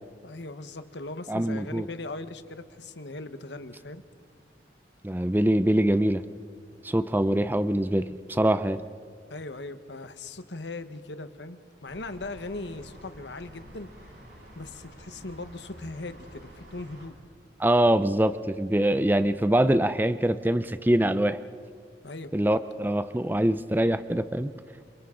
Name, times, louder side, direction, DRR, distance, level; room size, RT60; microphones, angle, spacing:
voice 1, 0.2-4.0 9.3-14.1 14.5-17.1 22.0-22.3, left 2 dB, 85° left, 10 dB, 1.3 m, -39 dB
voice 2, 1.3-1.9 5.0-6.2 6.8-8.8 17.6-21.4 22.3-24.5, right 1 dB, 10° right, 12 dB, 0.5 m, -24 dB
sound 1, 11.9-17.1, equal, 60° right, 7.5 m, -49 dB
30.0 x 27.5 x 3.9 m, 2.1 s
head